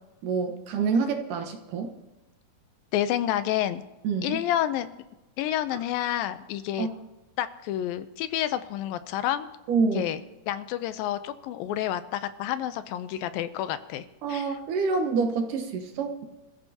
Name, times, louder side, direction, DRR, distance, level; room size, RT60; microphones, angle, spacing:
voice 1, 0.2-1.9 4.0-4.4 6.8-6.9 9.7-10.0 14.2-16.2, right 5 dB, 65° right, 5 dB, 2.6 m, -27 dB
voice 2, 2.9-3.8 4.2-4.9 5.4-6.9 7.4-9.5 9.9-10.2 10.5-14.6, left 12 dB, 80° left, 11 dB, 2.4 m, -29 dB
26.5 x 14.5 x 2.9 m, 1.0 s
omnidirectional pair, 4.2 m